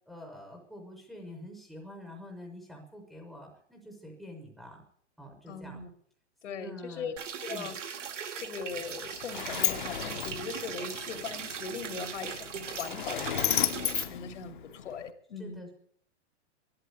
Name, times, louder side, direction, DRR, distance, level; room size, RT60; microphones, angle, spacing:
voice 1, 0.1-4.8 5.2-5.8 6.5-7.1 7.5-7.7 15.4-15.7, left 1 dB, ahead, 0 dB, 0.7 m, -46 dB
voice 2, 5.5-5.9 6.4-7.1 7.4-7.9 8.4-15.6, left 5 dB, 80° left, 6 dB, 2.4 m, -40 dB
sound 1, 7.2-14.0, right 7 dB, 85° right, 2.3 m, -39 dB
Sliding door, 8.7-15.1, left 11 dB, 45° left, 0.7 m, -34 dB
12.0 x 11.5 x 8.1 m, 0.64 s
hypercardioid pair, 180°, 36 cm